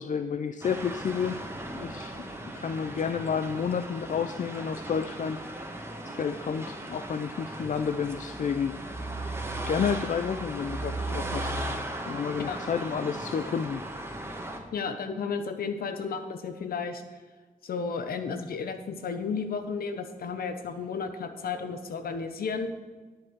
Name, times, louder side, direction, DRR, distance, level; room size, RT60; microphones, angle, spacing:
voice 1, 0.0-1.4 1.7-2.1 2.6-5.4 6.2-8.7 9.2-9.4 9.7-11.5 12.1-13.8, left 6 dB, 55° left, 10 dB, 0.5 m, -30 dB
sound 1, 0.6-14.6, right 1 dB, 15° right, 1.5 m, -37 dB
voice 2, 14.7-17.0 17.6-22.7, left 5 dB, 80° left, 8 dB, 1.0 m, -33 dB
11.0 x 7.6 x 4.7 m, 1.3 s
cardioid pair, 65°, 15 cm